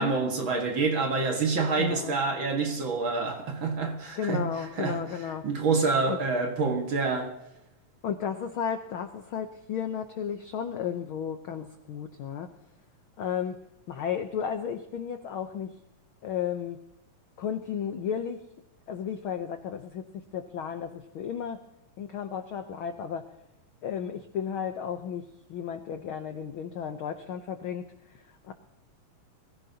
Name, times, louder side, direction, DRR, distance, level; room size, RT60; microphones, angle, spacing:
voice 1, 0.0-4.5 4.8-7.3, right 4 dB, 45° right, 2.2 m, -27 dB
voice 2, 1.8-2.2 4.2-5.5 6.1-6.2 8.0-12.5 13.2-13.6 13.9-15.7 16.2-16.8 17.4-18.4 18.9-21.6 22.0-23.3 23.8-27.9 28.5-28.6, left 8 dB, 75° left, 1.2 m, -33 dB
22.0 x 15.0 x 2.8 m
omnidirectional pair, 3.4 m